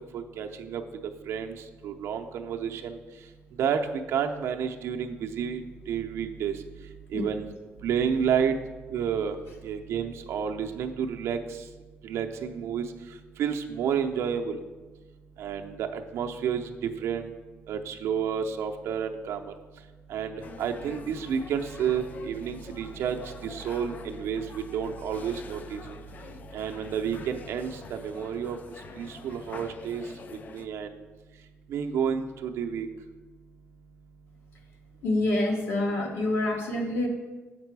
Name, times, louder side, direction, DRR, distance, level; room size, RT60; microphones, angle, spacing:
voice 1, 0.1-0.8 1.3-1.5 1.8-3.0 3.6-5.6 5.9-6.6 7.1-7.4 7.8-8.5 8.9-9.4 9.6-11.4 12.0-12.8 13.4-14.6 15.4-17.3 17.7-19.5 20.1-23.2 23.4-25.8 26.5-28.6 29.0-30.0 30.5-30.9 31.7-32.9, right 7 dB, 65° right, 4 dB, 0.6 m, -30 dB
sound 1, 20.4-30.7, left 5 dB, 35° left, 0.4 m, -46 dB
voice 2, 35.0-37.1, left 1 dB, 55° left, 2 dB, 1.2 m, -26 dB
7.4 x 6.0 x 4.6 m, 1.3 s
cardioid pair, 170°, 5 cm